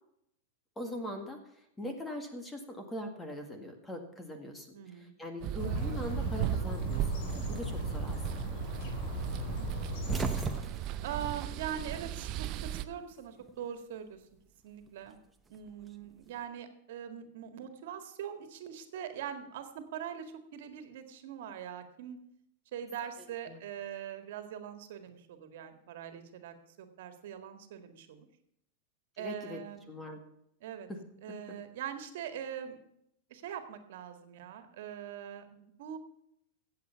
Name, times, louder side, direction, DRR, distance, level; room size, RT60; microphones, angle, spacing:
voice 1, 0.8-8.2 8.5-8.6 23.5-23.6 29.2-29.6 29.9-30.2 30.9-31.0, left 1 dB, 10° left, 5 dB, 1.9 m, -41 dB
voice 2, 4.7-5.1 9.1-9.5 11.0-14.2 14.6-15.2 15.5-22.2 22.7-28.3 29.2-29.9 30.6-30.9 31.2-32.8 33.3-36.0, right 9 dB, 70° right, 8 dB, 1.8 m, -42 dB
sound 1, 5.4-12.9, right 12 dB, 40° right, 0.7 m, -36 dB
sound 2, 5.6-10.6, left 2 dB, 50° left, 3.8 m, -38 dB
sound 3, 9.7-12.3 12.6-13.6 14.8-16.3, right 3 dB, 15° right, 1.0 m, -39 dB
15.5 x 8.2 x 5.7 m, 0.76 s
supercardioid pair, 145°, 0 cm